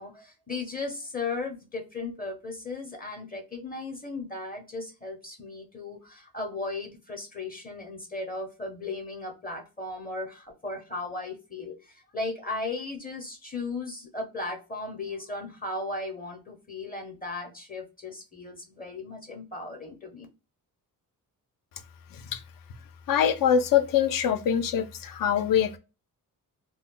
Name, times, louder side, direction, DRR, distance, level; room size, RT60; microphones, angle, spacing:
voice 1, 0.0-20.3, left 3 dB, 25° left, 0.7 m, -36 dB
voice 2, 23.1-25.8, left 8 dB, 65° left, 0.5 m, -24 dB
2.3 x 2.1 x 3.6 m
cardioid pair, 115°, 36 cm